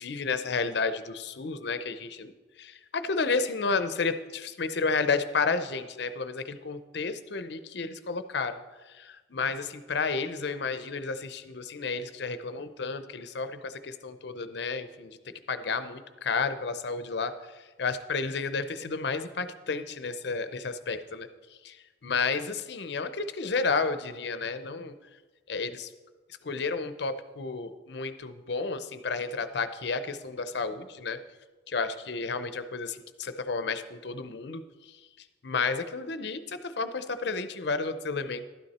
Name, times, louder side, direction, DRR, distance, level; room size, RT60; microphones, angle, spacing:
voice 1, 0.0-2.3 2.6-8.6 9.0-15.2 15.5-17.3 17.8-21.3 21.6-21.8 22.0-24.9 25.5-25.9 26.4-31.2 31.7-34.6 35.4-38.4, left 4 dB, 65° left, 11 dB, 0.7 m, -31 dB
12.5 x 9.6 x 4.2 m, 1.2 s
head